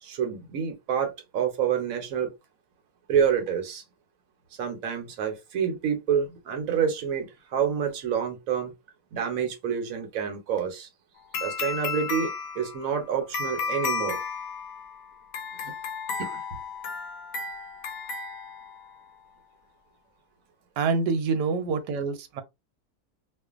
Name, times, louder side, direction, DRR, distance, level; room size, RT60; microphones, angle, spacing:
voice 1, 0.0-2.3 3.1-3.8 4.6-8.7 9.1-10.9 11.4-14.2 16.2-16.4, right 7 dB, 65° right, 1.1 m, -28 dB
sound 1, 11.3-19.0, left 5 dB, 70° left, 0.9 m, -33 dB
voice 2, 20.8-22.4, right 4 dB, 85° right, 1.2 m, -26 dB
2.5 x 2.4 x 2.4 m
omnidirectional pair, 1.7 m